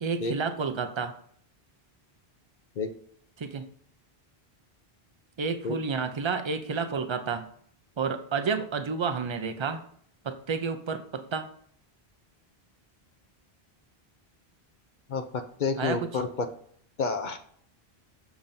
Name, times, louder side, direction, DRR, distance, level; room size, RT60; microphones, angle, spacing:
voice 1, 0.0-1.2 3.4-3.7 5.4-7.5 8.0-9.8 10.2-11.5 15.8-16.1, right 5 dB, 40° right, 8 dB, 0.4 m, -30 dB
voice 2, 15.1-16.5 17.0-17.4, left 4 dB, 55° left, 8 dB, 0.6 m, -29 dB
7.1 x 6.9 x 2.6 m, 0.63 s
omnidirectional pair, 1.0 m